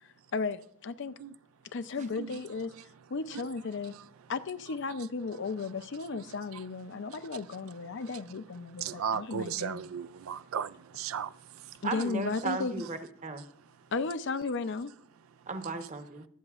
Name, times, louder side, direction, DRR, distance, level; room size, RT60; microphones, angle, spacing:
voice 1, 0.0-1.1 1.7-2.7 3.1-3.9 4.3-9.9 11.8-12.7 13.9-14.9, left 4 dB, 60° left, 0.6 m, -35 dB
voice 2, 8.8-10.7 11.0-11.3, right 8 dB, 90° right, 0.4 m, -35 dB
voice 3, 11.8-13.5 15.5-16.3, right 3 dB, 35° right, 0.9 m, -36 dB
23.5 x 7.9 x 2.4 m
head